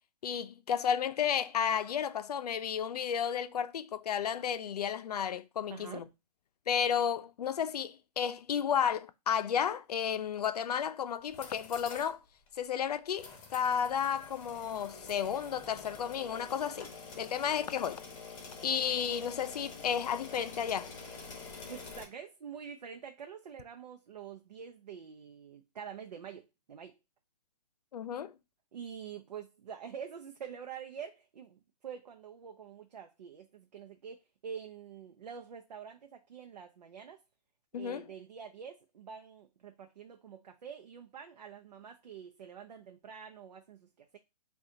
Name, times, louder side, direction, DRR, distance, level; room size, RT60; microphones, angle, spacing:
voice 1, 0.2-6.0 6.7-12.2 12.6-16.9 17.2-18.0 18.6-20.9 27.9-28.3 37.7-38.1, left 8 dB, 70° left, 0.5 m, -32 dB
voice 2, 5.7-6.1 17.3-17.4 21.7-26.9 28.7-37.2 37.8-44.2, right 7 dB, 80° right, 0.6 m, -46 dB
sound 1, 11.2-12.1 12.5-12.6 13.2-22.0, left 4 dB, 20° left, 1.0 m, -47 dB
6.3 x 2.4 x 2.7 m
hypercardioid pair, 155°, 21 cm